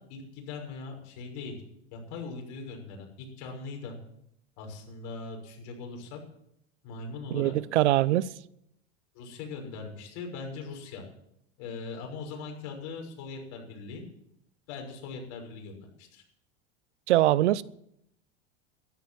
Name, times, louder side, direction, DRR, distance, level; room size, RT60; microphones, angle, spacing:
voice 1, 0.1-1.6 1.9-4.0 4.6-6.2 6.8-7.6 9.1-11.0 11.6-14.0 14.7-16.2, left 4 dB, 60° left, 6.1 m, -40 dB
voice 2, 7.3-8.3 17.1-17.6, right 15 dB, 80° right, 0.8 m, -23 dB
13.5 x 12.0 x 7.7 m
hypercardioid pair, 100°, 34 cm